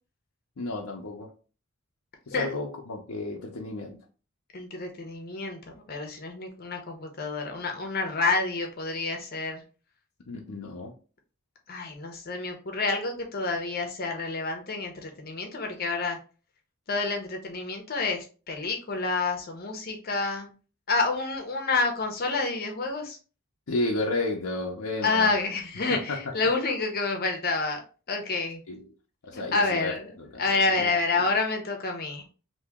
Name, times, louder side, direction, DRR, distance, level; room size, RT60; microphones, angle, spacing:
voice 1, 0.6-1.3 2.3-4.0 10.3-10.9 23.7-25.4 25.9-26.3 28.7-28.8 29.3-30.9 31.2-31.3, left 2 dB, 80° left, 0.6 m, -32 dB
voice 2, 4.5-5.6 5.9-9.6 11.7-16.2 16.9-20.5 20.9-23.2 25.0-27.8 28.1-28.6 29.3-30.1 30.4-32.2, left 3 dB, 45° left, 0.8 m, -28 dB
2.9 x 2.8 x 3.5 m
head